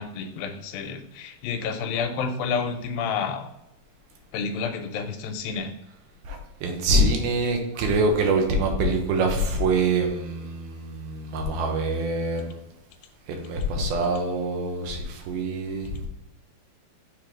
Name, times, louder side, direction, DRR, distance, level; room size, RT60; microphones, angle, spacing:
voice 1, 0.0-3.5 4.3-5.7, left 5 dB, 80° left, 6 dB, 2.3 m, -30 dB
voice 2, 6.3-12.6 13.3-15.9, right 2 dB, 80° right, 3 dB, 2.9 m, -25 dB
6.7 x 3.7 x 4.6 m, 0.89 s
omnidirectional pair, 4.3 m